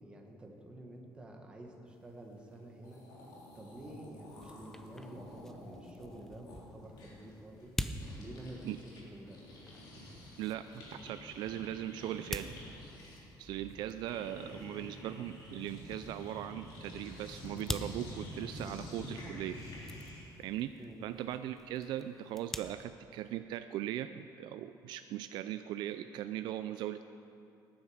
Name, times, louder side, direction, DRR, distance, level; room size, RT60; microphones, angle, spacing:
voice 1, 0.0-3.0 3.5-7.7 8.2-9.4 20.8-21.0, right 1 dB, 15° right, 1 dB, 1.4 m, -49 dB
sound 1, 2.5-2.6 2.8-9.0 9.3-20.4, left 1 dB, 60° left, 3.4 m, -49 dB
sound 2, 4.3-22.6, left 1 dB, 5° left, 0.4 m, -47 dB
voice 2, 10.4-12.6 13.4-19.6 20.4-27.0, right 12 dB, 70° right, 10 dB, 0.4 m, -39 dB
18.5 x 10.0 x 5.0 m, 2.7 s
cardioid pair, 170°, 8 cm